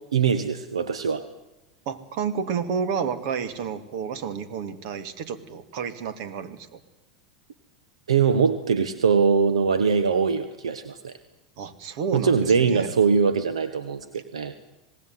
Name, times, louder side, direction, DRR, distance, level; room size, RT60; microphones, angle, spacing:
voice 1, 0.1-1.2 8.1-11.1 12.1-14.5, right 6 dB, 90° right, 11 dB, 1.4 m, -22 dB
voice 2, 1.9-6.8 11.6-12.9, right 6 dB, 60° right, 12 dB, 2.6 m, -30 dB
27.0 x 19.0 x 9.7 m, 0.96 s
hypercardioid pair, 95°, 3 cm